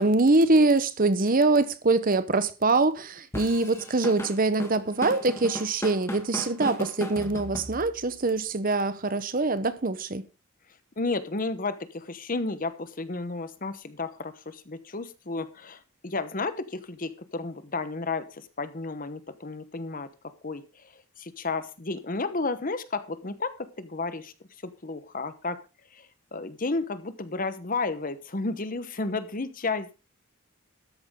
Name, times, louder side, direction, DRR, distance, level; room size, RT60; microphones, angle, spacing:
voice 1, 0.0-10.2, right 3 dB, 40° right, 0.9 m, -24 dB
Drum kit / Drum, 3.3-8.2, equal, 10° left, 1.8 m, -36 dB
voice 2, 11.0-20.6 21.2-24.3 24.8-25.6 25.9-29.9, left 3 dB, 40° left, 1.0 m, -32 dB
13.0 x 10.5 x 3.7 m
head